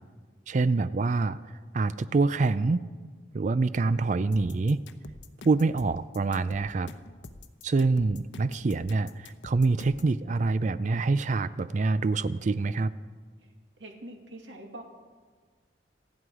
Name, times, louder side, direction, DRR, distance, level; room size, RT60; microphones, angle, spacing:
voice 1, 0.5-1.4 1.7-2.8 3.3-4.8 5.4-6.9 7.6-12.9, right 3 dB, 40° right, 15 dB, 0.4 m, -26 dB
sound 1, 4.3-10.2, left 3 dB, 90° left, 0.9 m, -46 dB
voice 2, 13.4-14.8, right 1 dB, 85° right, 2 dB, 2.5 m, -45 dB
27.5 x 9.6 x 4.8 m, 1.6 s
head